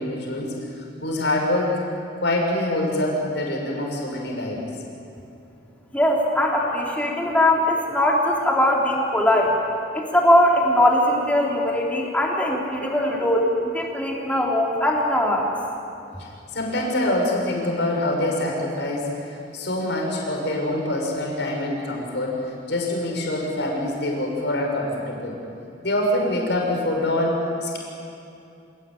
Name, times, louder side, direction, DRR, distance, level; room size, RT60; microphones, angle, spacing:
voice 1, 0.0-1.8 2.2-4.6 16.2-19.1 19.5-25.4 25.8-27.8, left 1 dB, 65° left, 0 dB, 6.4 m, -25 dB
voice 2, 5.9-9.6 9.9-15.5, left 1 dB, 10° left, -2 dB, 3.5 m, -20 dB
28.5 x 18.5 x 9.3 m, 2.7 s
head